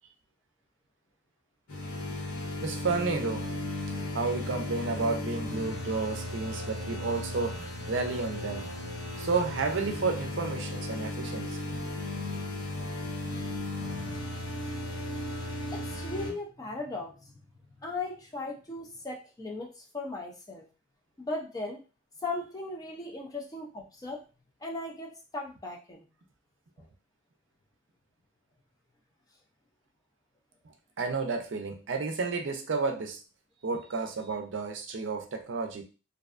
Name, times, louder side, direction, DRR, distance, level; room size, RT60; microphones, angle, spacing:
sound 1, 1.7-16.3, left 2 dB, 90° left, 0.7 m, -36 dB
voice 1, 2.6-3.5 4.1-8.7 9.2-11.6 31.0-33.2 33.6-35.8, right 4 dB, 60° right, 4 dB, 0.5 m, -31 dB
voice 2, 15.7-17.1 17.8-20.6 21.2-21.8 22.2-24.2 24.6-26.1, left 2 dB, 15° left, 0 dB, 0.4 m, -37 dB
2.5 x 2.2 x 2.4 m, 0.33 s
head